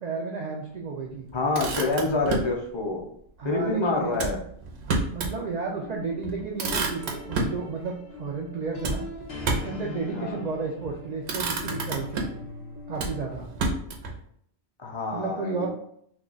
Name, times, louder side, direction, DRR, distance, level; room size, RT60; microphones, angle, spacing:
voice 1, 0.0-1.3 3.4-4.4 5.1-9.0 9.5-12.4 12.9-13.5 15.1-15.7, right 4 dB, 55° right, 0 dB, 0.5 m, -32 dB
voice 2, 1.3-3.1 3.4-4.4 10.1-10.4 14.8-15.7, left 3 dB, 35° left, 0 dB, 0.5 m, -27 dB
Motor vehicle (road), 1.3-2.6 4.1-5.4 5.8-5.9 6.2-7.6 8.8-9.8 10.7-10.9 11.2-12.5 13.0-14.2, right 3 dB, 75° right, 0.9 m, -30 dB
sound 1, 5.7-13.8, left 3 dB, 70° left, 0.9 m, -41 dB
3.0 x 2.3 x 3.8 m, 0.67 s
omnidirectional pair, 1.1 m